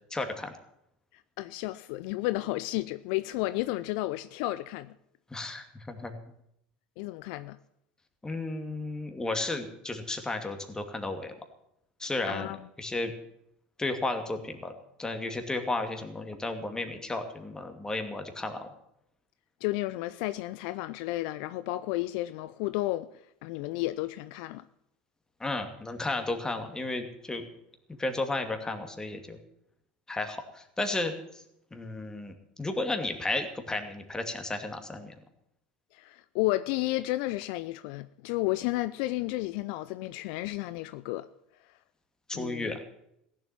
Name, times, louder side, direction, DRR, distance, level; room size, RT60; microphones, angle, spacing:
voice 1, 0.1-0.5 5.3-6.1 8.2-11.3 12.0-12.5 12.8-13.1 13.8-14.7 15.0-18.7 25.4-27.5 28.0-29.4 30.1-31.4 31.7-32.3 32.6-35.1 42.3-42.8, left 2 dB, 15° left, 2.5 m, -33 dB
voice 2, 1.4-4.9 7.0-7.6 12.3-12.6 19.6-23.1 23.4-24.6 35.9-41.3 42.3-42.8, left 18 dB, 65° left, 0.5 m, -32 dB
15.5 x 7.6 x 9.6 m
hypercardioid pair, 80°, 5 cm